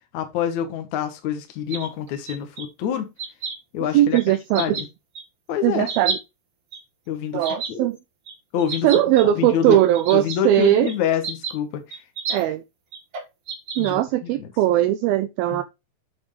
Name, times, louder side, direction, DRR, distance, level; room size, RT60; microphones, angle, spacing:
voice 1, 0.1-3.1 3.7-4.9 5.5-5.9 7.1-7.9 8.5-8.9 9.2-9.8 10.1-12.0 13.8-14.5 15.5-15.6, left 9 dB, 65° left, 2.0 m, -27 dB
sound 1, 1.7-2.6 3.2-3.5 4.1-4.2 4.5-4.8 5.1-5.2 5.9-6.2 6.7-6.8 7.4-7.7 8.3-8.4 8.6-9.2 9.6-10.9 11.2-11.5 11.9-12.4 12.9-13.9, right 5 dB, 45° right, 1.8 m, -30 dB
voice 2, 3.9-4.8 5.6-6.2 7.3-8.0 8.8-10.9 12.3-12.6 13.8-15.6, right 13 dB, 80° right, 2.2 m, -19 dB
7.7 x 7.2 x 3.2 m
omnidirectional pair, 4.8 m